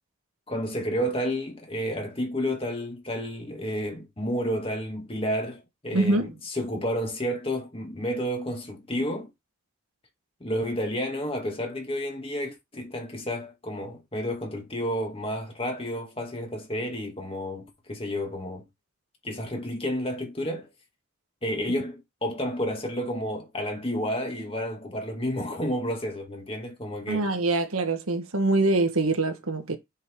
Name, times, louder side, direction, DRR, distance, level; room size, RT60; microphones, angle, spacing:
voice 1, 0.5-9.3 10.4-18.7 19.2-20.7 21.4-27.3, equal, 25° left, 2.1 m, -31 dB
voice 2, 5.9-6.3 27.1-29.8, right 2 dB, 90° right, 1.5 m, -24 dB
7.4 x 5.2 x 3.7 m
head